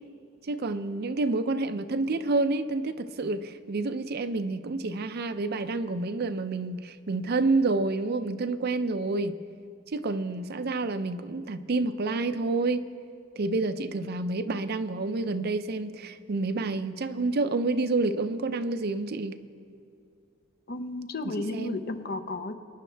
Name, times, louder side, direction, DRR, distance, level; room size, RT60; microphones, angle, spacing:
voice 1, 0.5-9.4 9.9-12.9 13.4-19.4 21.2-21.8, right 3 dB, 55° right, 11 dB, 0.5 m, -29 dB
voice 2, 20.7-22.6, left 2 dB, 55° left, 9 dB, 0.7 m, -33 dB
24.0 x 10.0 x 3.4 m, 2.4 s
head